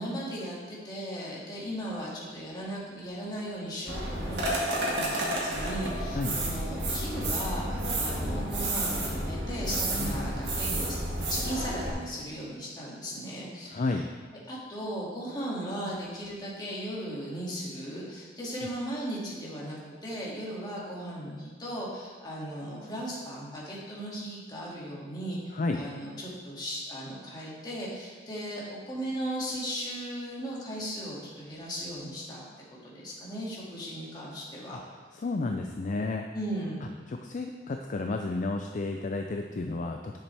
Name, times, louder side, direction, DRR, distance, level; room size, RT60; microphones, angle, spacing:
voice 1, 0.0-14.0 14.5-32.4 32.7-34.8 36.3-36.9, equal, 25° left, -6 dB, 2.3 m, -37 dB
sound 1, 3.9-11.9, right 1 dB, 65° right, 2.0 m, -31 dB
voice 2, 13.7-14.1 25.5-25.8 34.7-34.8 35.2-36.2 37.1-40.2, left 3 dB, 45° left, 4 dB, 0.4 m, -31 dB
10.0 x 7.3 x 3.4 m, 1.4 s
head